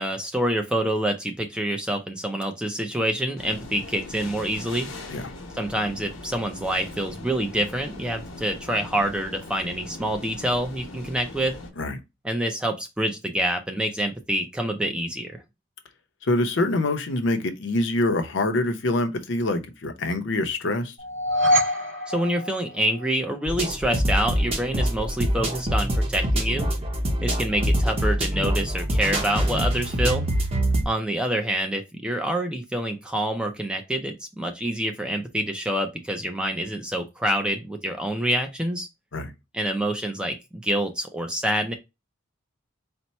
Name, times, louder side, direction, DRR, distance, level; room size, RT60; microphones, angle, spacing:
voice 1, 0.0-4.9 5.5-11.6 12.2-15.4 22.1-26.7 27.2-30.3 30.9-38.9 39.5-41.7, right 1 dB, 5° right, 0.4 m, -27 dB
sound 1, 3.4-11.7, left 2 dB, 80° left, 1.0 m, -40 dB
voice 2, 16.2-20.9 30.7-30.9 39.1-39.3, left 2 dB, 60° left, 0.7 m, -25 dB
sound 2, 21.0-23.3, equal, 65° right, 1.4 m, -25 dB
sound 3, 23.5-30.8, equal, 25° right, 0.9 m, -24 dB
4.3 x 2.1 x 4.1 m
head